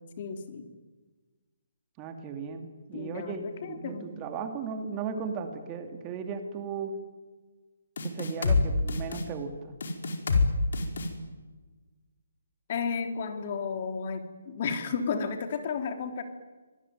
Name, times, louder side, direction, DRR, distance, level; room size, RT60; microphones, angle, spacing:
voice 1, 0.2-0.7 2.9-4.1 12.7-16.2, left 5 dB, 40° left, 6 dB, 3.4 m, -33 dB
voice 2, 2.0-6.9 8.0-9.7, right 5 dB, 20° right, 6 dB, 2.5 m, -36 dB
sound 1, 8.0-8.6 8.9-9.2 9.8-10.5 10.7-11.1, left 4 dB, 65° left, 5.0 m, -25 dB
26.0 x 20.5 x 9.4 m, 1.3 s
hypercardioid pair, 160°, 0 cm